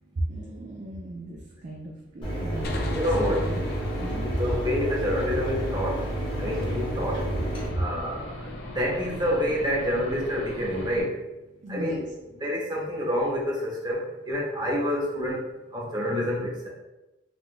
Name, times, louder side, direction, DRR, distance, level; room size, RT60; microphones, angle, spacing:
voice 1, 0.3-1.4 1.6-3.6 4.0-4.2 7.8-7.9 11.6-12.0, right 1 dB, 40° right, -2 dB, 0.4 m, -36 dB
Mechanisms, 2.2-7.7, right 1 dB, 30° left, 0.9 m, -30 dB
Aircraft / Engine, 2.6-11.0, left 1 dB, 85° left, 0.7 m, -39 dB
sound 1, 2.6-6.1, left 1 dB, 55° left, 0.4 m, -39 dB
voice 2, 2.9-3.4 4.4-6.0 6.4-7.2 7.8-8.3 8.7-11.2 11.7-12.1 12.4-15.4 15.7-16.7, equal, 25° right, -4 dB, 0.8 m, -27 dB
3.6 x 2.4 x 2.4 m, 1.0 s
head